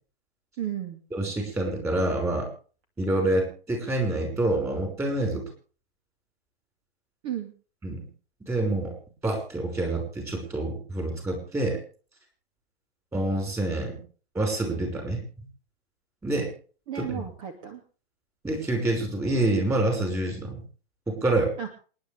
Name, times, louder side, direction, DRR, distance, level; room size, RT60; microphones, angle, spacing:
voice 1, 0.6-1.0 7.2-7.5 16.9-17.8 21.6-21.7, right 10 dB, 35° right, 5 dB, 2.5 m, -33 dB
voice 2, 1.1-2.5 3.0-5.5 7.8-8.1 8.5-8.9 9.2-11.8 13.1-14.0 14.3-15.2 16.2-16.5 16.9-17.3 18.4-20.6 21.1-21.5, right 2 dB, 10° right, 3 dB, 5.5 m, -27 dB
27.5 x 10.5 x 3.5 m, 0.39 s
hypercardioid pair, 150°, 31 cm